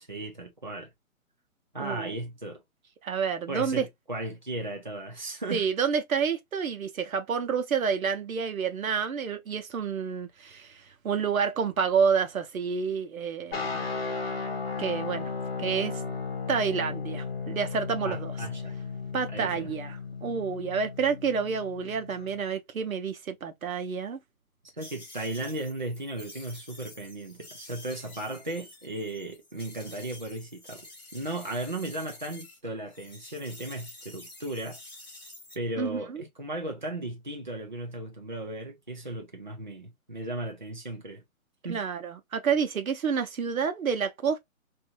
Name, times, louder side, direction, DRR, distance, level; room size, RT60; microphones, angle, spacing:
voice 1, 0.1-0.9 1.7-2.6 3.5-5.7 18.0-18.7 19.3-19.7 24.8-30.9 31.1-34.8 35.5-41.2 41.6-41.8, right 2 dB, 35° right, 0.5 m, -36 dB
voice 2, 1.8-2.1 3.0-3.8 5.5-13.7 14.8-15.3 15.6-16.0 16.5-18.3 19.1-24.2 35.8-36.2 41.7-44.4, right 6 dB, 70° right, 0.8 m, -29 dB
sound 1, 13.5-22.4, left 4 dB, 45° left, 1.1 m, -35 dB
sound 2, 24.8-32.6 32.9-35.5, left 2 dB, 15° left, 1.2 m, -49 dB
2.6 x 2.6 x 2.8 m
hypercardioid pair, 180°, 42 cm